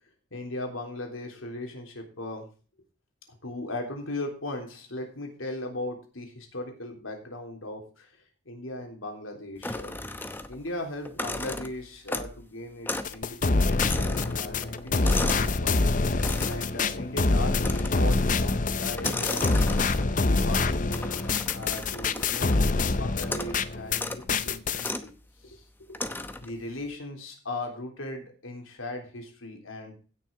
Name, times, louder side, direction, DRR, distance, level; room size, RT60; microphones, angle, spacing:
voice 1, 0.3-2.5 3.4-8.1 8.5-10.0 10.5-15.8 16.4-20.9 21.5-25.1 25.4-26.0 26.4-29.9, left 1 dB, 90° left, 3 dB, 3.5 m, -38 dB
sound 1, 9.6-10.7 11.0-12.5 12.9-13.2 13.4-15.6 16.2-16.7 17.6-18.1 18.9-20.2 20.9-22.6 23.2-23.6 23.9-24.2 24.8-25.1 25.9-26.5, left 2 dB, 10° left, 0.8 m, -35 dB
sound 2, 13.0-24.0 24.3-24.9, left 3 dB, 40° left, 0.6 m, -25 dB
16.0 x 6.5 x 4.7 m, 0.36 s
head